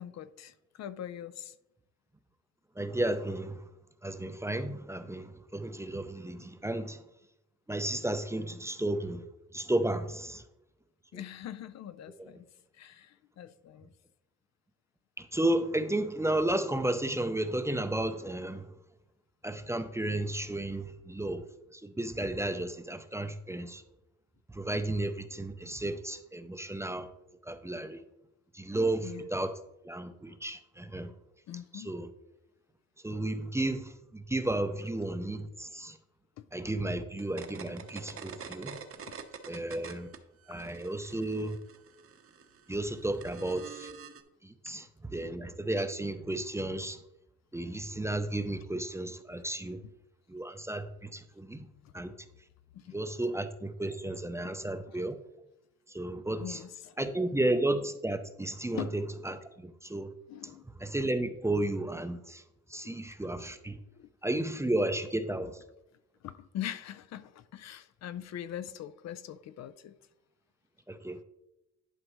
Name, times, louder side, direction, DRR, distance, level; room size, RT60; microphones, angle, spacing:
voice 1, 0.0-1.5 11.1-12.4 12.7-13.9 29.0-29.2 31.5-31.9 36.4-36.5 39.1-39.2 51.8-51.9 52.7-53.0 54.4-54.5 54.9-55.0 56.4-57.0 58.7-59.0 60.3-60.6 62.8-63.0 64.0-64.1 66.2-70.0, left 11 dB, 60° left, 0.5 m, -42 dB
voice 2, 2.8-3.6 4.0-7.0 7.7-9.2 9.5-10.4 11.1-11.2 12.2-12.3 15.2-18.7 19.4-21.4 21.7-23.8 24.5-27.1 27.4-28.0 28.5-29.5 29.8-31.1 31.7-32.1 33.0-36.0 36.5-38.8 39.5-40.1 40.5-41.6 42.7-43.9 44.4-47.0 47.5-49.8 50.3-51.7 51.9-52.1 52.9-55.2 55.9-56.6 57.0-60.1 60.4-60.5 60.8-62.4 62.7-63.8 64.2-65.6 70.9-71.2, right 1 dB, 10° right, 0.5 m, -33 dB
sound 1, 37.2-40.2 40.5-44.2, right 7 dB, 45° right, 0.9 m, -46 dB
11.0 x 5.1 x 3.0 m
cardioid pair, 90°, 30 cm